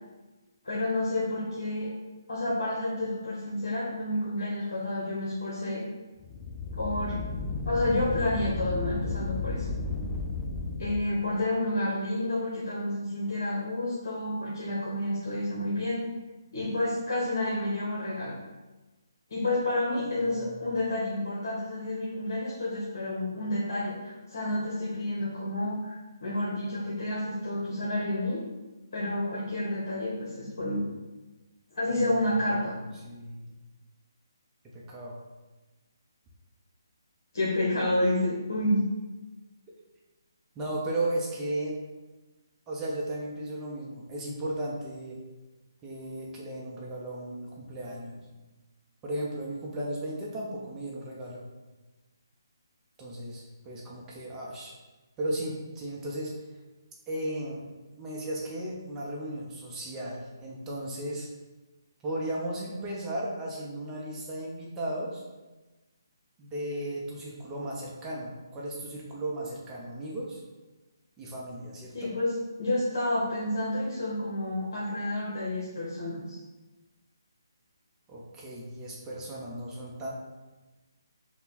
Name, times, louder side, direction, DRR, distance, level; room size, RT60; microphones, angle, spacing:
voice 1, 0.6-1.9 2.3-5.8 6.7-7.2 7.6-9.7 10.8-16.0 16.5-18.4 19.3-28.4 28.9-30.8 31.7-32.7 37.3-38.8 71.9-76.4, left 1 dB, 55° left, -6 dB, 1.2 m, -30 dB
sound 1, 6.2-11.1, left 3 dB, 15° left, 0.4 m, -33 dB
voice 2, 20.2-20.6 31.9-32.1 33.0-33.5 34.7-35.2 40.6-41.7 42.7-45.2 45.8-48.2 49.0-51.4 53.0-54.7 55.2-56.3 57.1-57.6 58.0-61.3 62.0-65.2 66.4-70.4 71.2-72.1 78.1-80.1, right 1 dB, 15° right, -5 dB, 0.8 m, -35 dB
5.6 x 2.3 x 4.0 m, 1.2 s
figure-of-eight pair, 145°, 2 cm